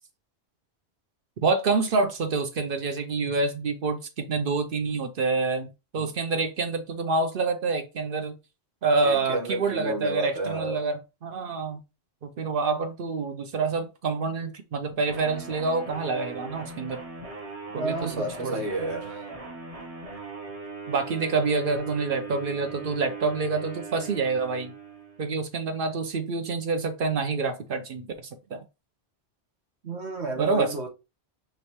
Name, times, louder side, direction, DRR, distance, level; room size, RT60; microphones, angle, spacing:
voice 1, 1.4-8.4 8.8-11.8 12.2-17.0 17.7-18.1 18.4-18.6 20.9-24.7 25.2-28.1 28.5-28.6 30.4-30.7, right 4 dB, 60° right, 0.8 m, -27 dB
voice 2, 9.0-10.8 17.7-19.3 29.8-30.9, right 2 dB, 85° right, 1.3 m, -31 dB
sound 1, 15.1-25.3, right 4 dB, 35° right, 1.0 m, -39 dB
5.1 x 3.1 x 3.0 m
omnidirectional pair, 1.1 m